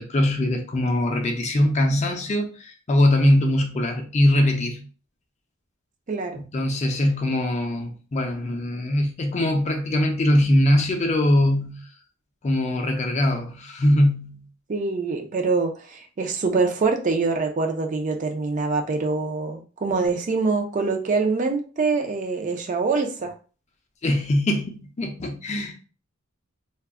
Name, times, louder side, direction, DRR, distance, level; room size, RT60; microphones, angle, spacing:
voice 1, 0.0-4.8 6.5-11.8 12.4-14.4 24.0-25.8, left 1 dB, 30° left, 0.4 m, -22 dB
voice 2, 6.1-6.4 14.7-23.3, right 4 dB, 35° right, 0.4 m, -24 dB
2.3 x 2.0 x 3.5 m
head